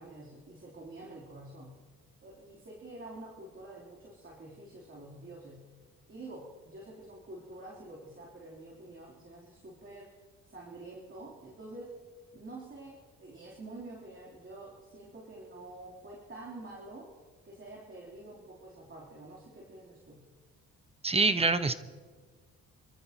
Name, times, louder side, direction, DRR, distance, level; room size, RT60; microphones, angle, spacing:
voice 1, 0.0-1.8 2.2-5.7 6.1-10.2 10.4-12.0 12.3-17.1 17.4-20.3, right 2 dB, 40° right, -3 dB, 3.1 m, -48 dB
voice 2, 21.0-21.7, right 3 dB, 20° right, 10 dB, 0.9 m, -25 dB
28.0 x 13.5 x 2.9 m, 1.5 s
cardioid pair, 90°, 30 cm